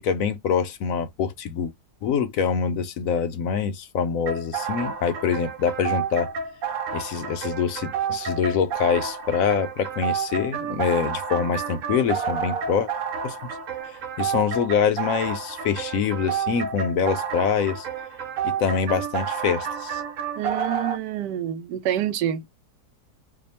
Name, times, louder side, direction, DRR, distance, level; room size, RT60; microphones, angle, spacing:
voice 1, 0.0-1.7 2.0-6.3 6.9-12.9 13.2-13.4 13.8-17.9 18.4-20.0, left 7 dB, 70° left, 0.9 m, -25 dB
sound 1, 4.3-21.0, right 6 dB, 65° right, 0.9 m, -30 dB
voice 2, 20.4-22.4, right 10 dB, 85° right, 1.2 m, -27 dB
2.7 x 2.3 x 4.2 m
omnidirectional pair, 1.8 m